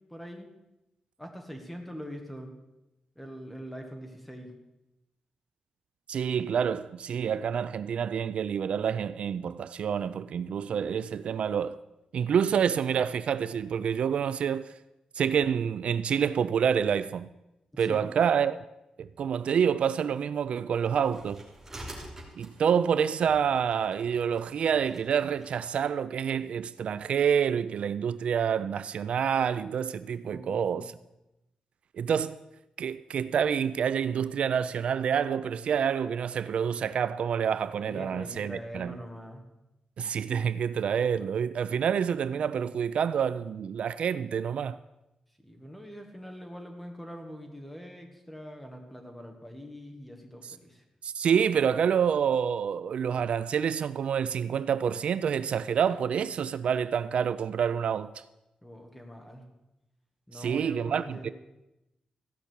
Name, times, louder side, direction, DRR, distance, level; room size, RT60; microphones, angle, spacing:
voice 1, 0.1-0.5 1.2-2.5 3.2-4.5 17.7-18.0 30.2-30.9 37.7-39.4 45.4-50.8 58.6-59.4 60.3-61.3, equal, 5° left, 1.9 m, -43 dB
voice 2, 6.1-11.8 12.1-14.7 15.1-17.3 17.8-18.6 19.0-21.4 22.4-30.9 31.9-32.4 32.8-39.0 40.0-44.8 50.4-50.6 51.0-58.1 60.3-61.3, right 7 dB, 65° right, 0.4 m, -27 dB
sound 1, 20.8-25.7, right 1 dB, 20° right, 3.0 m, -48 dB
15.5 x 5.9 x 8.2 m
wide cardioid pair, 135°, 2 cm